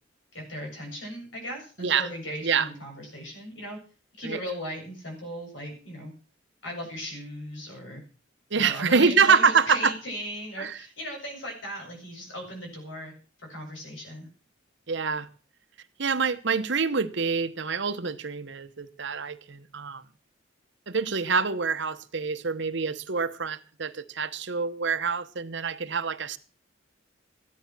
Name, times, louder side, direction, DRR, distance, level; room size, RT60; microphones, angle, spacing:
voice 1, 0.3-3.8 4.2-6.1 6.6-8.0 8.5-13.1 13.4-14.3, equal, 70° left, 7.6 m, -37 dB
voice 2, 8.5-9.9 10.6-10.8 14.9-15.3 16.0-20.0 20.9-26.4, right 5 dB, 65° right, 1.1 m, -26 dB
15.0 x 11.0 x 6.1 m
head